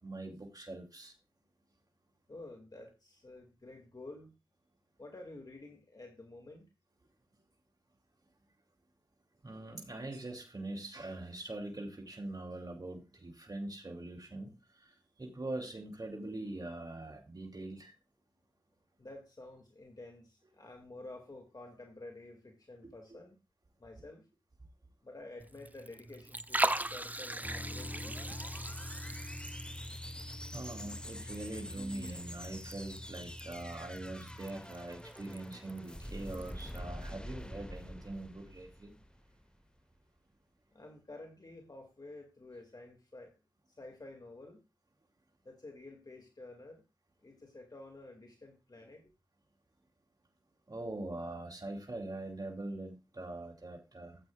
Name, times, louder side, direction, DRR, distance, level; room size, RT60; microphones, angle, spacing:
voice 1, 0.0-1.1 9.4-14.5 15.2-17.9 22.8-22.9 30.5-38.9 50.7-54.2, right 2 dB, 55° right, 0 dB, 2.7 m, -43 dB
voice 2, 2.3-4.3 5.0-6.7 19.0-23.4 23.8-24.3 25.0-28.2 40.7-43.3 43.7-44.6 45.4-46.8 47.2-49.1, left 2 dB, 55° left, 2 dB, 2.1 m, -50 dB
Liquid, 25.4-36.8, right 1 dB, 20° right, 0.6 m, -41 dB
sound 1, 27.3-39.5, equal, 10° left, 1.0 m, -48 dB
sound 2, 27.4-34.5, left 1 dB, 30° left, 1.4 m, -46 dB
14.5 x 8.5 x 2.4 m, 0.27 s
cardioid pair, 45°, 8 cm